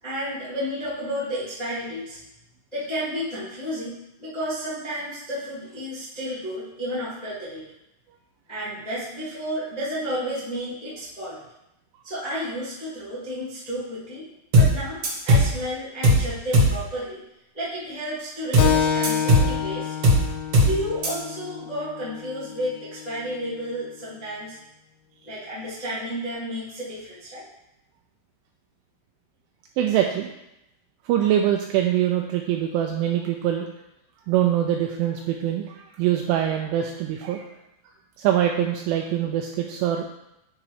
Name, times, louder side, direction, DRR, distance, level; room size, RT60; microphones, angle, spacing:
voice 1, 0.0-2.2 2.7-7.6 8.5-11.4 12.0-14.3 14.5-17.2 17.5-19.9 20.6-24.6 25.2-27.4, equal, 50° left, -11 dB, 0.4 m, -32 dB
sound 1, 14.5-14.8 15.0-15.5 16.0-16.3 16.5-16.8 18.5-18.8 19.0-19.5 20.0-20.3 20.5-20.8 21.0-21.1, equal, 60° right, 1.6 m, -17 dB
Keyboard (musical), 18.6-23.7, left 8 dB, 80° left, 3.5 m, -28 dB
voice 2, 29.8-30.3 31.1-33.7 34.3-37.5 38.2-40.1, right 11 dB, 85° right, 2 dB, 2.8 m, -23 dB
9.8 x 3.9 x 4.8 m, 0.86 s
omnidirectional pair, 5.9 m